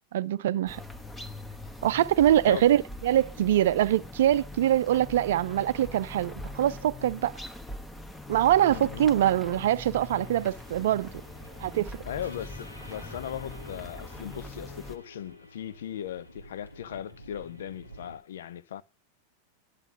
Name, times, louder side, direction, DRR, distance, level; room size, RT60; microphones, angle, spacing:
voice 1, 0.1-0.8 1.8-7.3 8.3-11.1 11.6-11.9, right 12 dB, 55° right, 0.5 m, -24 dB
sound 1, 0.7-15.0, left 2 dB, 10° left, 1.1 m, -42 dB
voice 2, 8.7-9.1 12.0-18.8, left 10 dB, 60° left, 0.6 m, -38 dB
sound 2, 9.9-18.2, equal, 85° left, 2.2 m, -50 dB
11.0 x 6.7 x 6.0 m
figure-of-eight pair, 90°, 0 cm